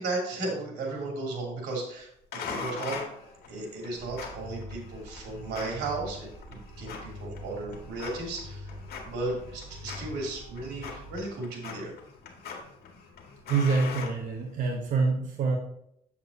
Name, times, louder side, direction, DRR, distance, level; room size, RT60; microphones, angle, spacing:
voice 1, 0.0-2.1 2.3-3.0 3.5-8.7 9.0-11.9, right 2 dB, 90° right, -1 dB, 2.8 m, -35 dB
sound 1, 2.3-14.8, left 5 dB, 65° left, 1.7 m, -42 dB
sound 2, 4.0-11.2, left 1 dB, 5° right, 2.4 m, -45 dB
voice 2, 13.5-15.6, right 4 dB, 50° right, 1 dB, 1.0 m, -26 dB
8.1 x 7.2 x 2.7 m, 0.73 s
cardioid pair, 110°, 17 cm